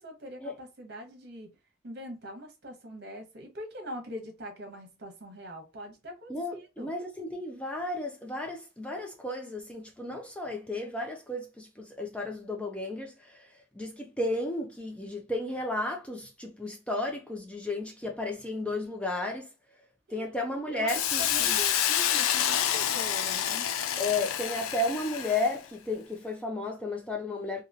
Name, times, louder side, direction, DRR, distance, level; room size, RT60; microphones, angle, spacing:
voice 1, 0.0-1.5 1.8-6.9 20.1-20.3 20.7-23.7, equal, 50° right, 0.9 m, -42 dB
voice 2, 6.3-13.5 13.8-19.5 20.1-21.6 24.0-27.6, left 2 dB, 5° left, 0.4 m, -33 dB
Hiss, 20.9-25.6, left 10 dB, 85° left, 0.4 m, -28 dB
2.8 x 2.8 x 2.5 m
head